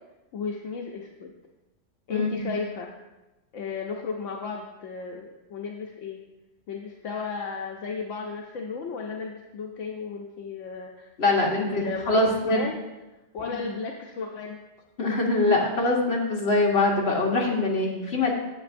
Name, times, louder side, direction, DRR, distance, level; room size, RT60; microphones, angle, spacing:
voice 1, 0.3-1.3 2.1-2.9 3.5-6.2 6.7-11.1 11.4-12.8 13.3-14.6, left 5 dB, 80° left, 1 dB, 1.0 m, -34 dB
voice 2, 2.1-2.5 11.2-12.6 13.5-13.6 15.0-18.3, left 2 dB, 55° left, -1 dB, 1.5 m, -23 dB
9.2 x 7.9 x 2.5 m, 1.0 s
omnidirectional pair, 1.3 m